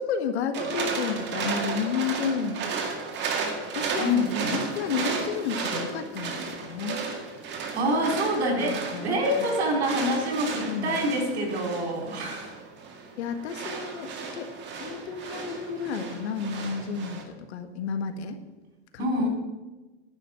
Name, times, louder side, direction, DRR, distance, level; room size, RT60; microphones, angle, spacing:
voice 1, 0.0-2.6 3.7-4.1 4.5-7.0 8.5-9.5 10.7-11.0 13.2-18.4 18.9-19.3, left 6 dB, 80° left, 8 dB, 1.5 m, -32 dB
sound 1, 0.5-17.2, right 5 dB, 35° right, 1.9 m, -34 dB
voice 2, 4.0-4.5 7.7-12.5 19.0-19.3, equal, 85° right, 1 dB, 4.5 m, -26 dB
10.5 x 6.0 x 8.9 m, 1.2 s
supercardioid pair, 140°, 32 cm